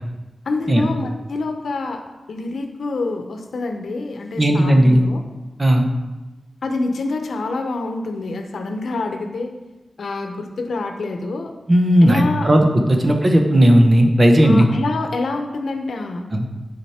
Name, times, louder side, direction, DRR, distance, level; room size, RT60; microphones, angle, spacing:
voice 1, 0.5-2.0 2.3-5.2 6.6-9.5 10.0-11.5 12.0-12.5 12.9-13.1 14.4-16.2, left 3 dB, 90° left, 4 dB, 0.8 m, -26 dB
voice 2, 4.4-5.0 5.6-5.9 11.7-14.7 16.3-16.5, equal, 30° right, 4 dB, 1.0 m, -14 dB
10.5 x 5.1 x 4.3 m, 1.1 s
wide cardioid pair, 135°, 0 cm